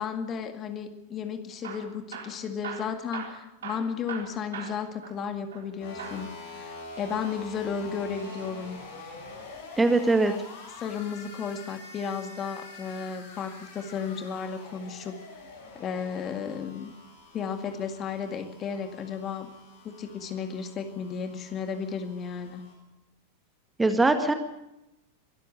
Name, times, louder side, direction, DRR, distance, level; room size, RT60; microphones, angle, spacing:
voice 1, 0.0-8.8 10.3-10.4 10.8-15.2 15.8-16.9 17.3-19.5 19.8-22.6, left 6 dB, 30° left, 8 dB, 2.0 m, -34 dB
Hammer / Drill, 1.5-5.7 6.0-6.3 7.1-8.5 10.3-11.5 13.2-13.7 14.4-15.2 15.9-16.2 16.5-16.6 17.2-17.3, right 7 dB, 65° right, 4.0 m, -43 dB
sound 1, 5.8-22.7, left 3 dB, 60° left, 7.2 m, -46 dB
voice 2, 9.8-10.3 23.8-24.3, right 2 dB, 10° right, 7 dB, 1.8 m, -21 dB
23.5 x 13.5 x 8.5 m, 0.90 s
figure-of-eight pair, 90°, 0 cm